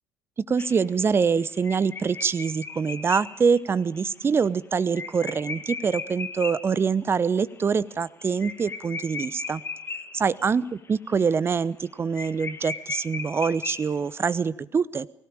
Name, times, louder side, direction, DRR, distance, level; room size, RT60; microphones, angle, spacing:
voice 1, 0.4-9.6 10.1-15.1, right 5 dB, 30° right, 19 dB, 0.9 m, -25 dB
sound 1, 0.6-6.8 7.1-7.2 7.5-7.6 7.9-10.5 10.9-11.2 11.5-11.6 11.8-11.9 12.2-14.2, left 4 dB, 30° left, 2.1 m, -37 dB
23.5 x 17.0 x 8.9 m, 0.78 s
figure-of-eight pair, 50°, 8 cm